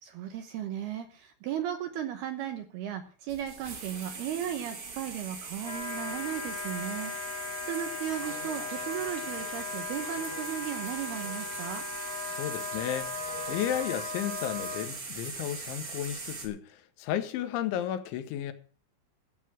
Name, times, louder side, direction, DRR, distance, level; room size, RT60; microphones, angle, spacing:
voice 1, 0.0-11.8, right 10 dB, 70° right, 2.6 m, -36 dB
sound 1, 3.3-16.5, right 4 dB, 40° right, 2.2 m, -40 dB
Wind instrument woodwind instrument, 5.6-14.9, left 5 dB, 60° left, 1.7 m, -38 dB
voice 2, 12.3-18.5, left 10 dB, 75° left, 3.3 m, -33 dB
14.5 x 8.3 x 6.1 m
omnidirectional pair, 5.6 m